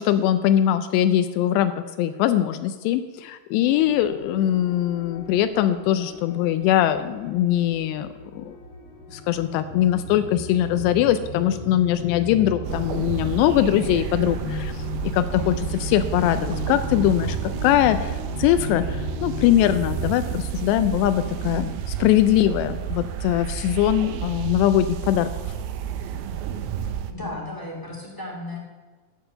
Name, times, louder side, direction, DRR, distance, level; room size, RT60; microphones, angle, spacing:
voice 1, 0.0-1.7 2.0-8.1 8.4-8.5 9.1-14.8 15.1-25.3, left 12 dB, 85° left, 10 dB, 2.7 m, -21 dB
sound 1, 3.7-20.1, left 3 dB, 55° left, 1.8 m, -35 dB
sound 2, 12.6-27.1, right 9 dB, 80° right, 2.1 m, -31 dB
voice 2, 27.1-28.6, left 2 dB, 10° left, -3 dB, 1.2 m, -34 dB
11.5 x 8.1 x 6.5 m, 1.4 s
omnidirectional pair, 4.9 m